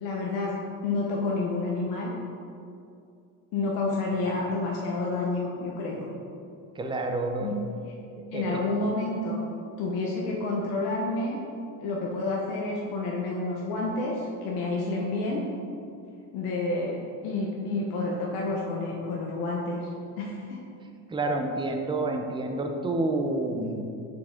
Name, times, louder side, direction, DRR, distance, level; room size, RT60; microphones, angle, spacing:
voice 1, 0.0-0.6 0.8-2.1 3.5-6.1 7.4-7.6 8.3-9.4 9.8-11.4 11.8-15.4 16.3-19.9 20.2-20.6, left 2 dB, 75° left, -2 dB, 0.9 m, -29 dB
voice 2, 6.7-7.5 8.3-8.6 21.1-23.8, right 2 dB, 15° right, 4 dB, 0.4 m, -29 dB
6.0 x 4.7 x 3.7 m, 2.6 s
cardioid pair, 125°, 37 cm